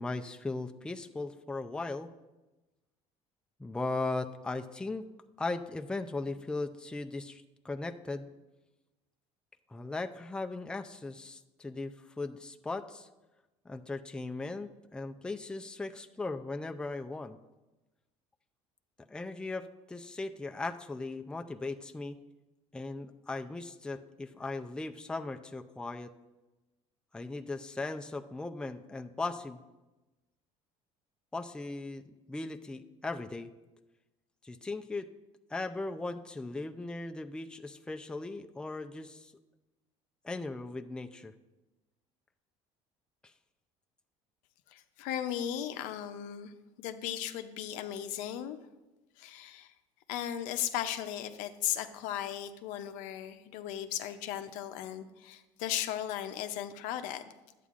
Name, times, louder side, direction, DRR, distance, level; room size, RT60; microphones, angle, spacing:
voice 1, 0.0-2.1 3.6-5.0 5.4-8.3 9.7-13.1 13.7-17.4 19.1-22.2 22.7-26.1 27.1-29.6 31.3-33.5 34.4-35.1 35.5-39.3 40.2-41.3, left 3 dB, 5° left, 5 dB, 0.4 m, -38 dB
voice 2, 44.7-46.5 46.8-48.6 49.2-49.7 50.1-57.2, left 11 dB, 80° left, 9 dB, 0.6 m, -36 dB
11.0 x 8.3 x 2.5 m, 1.1 s
supercardioid pair, 100°, 13 cm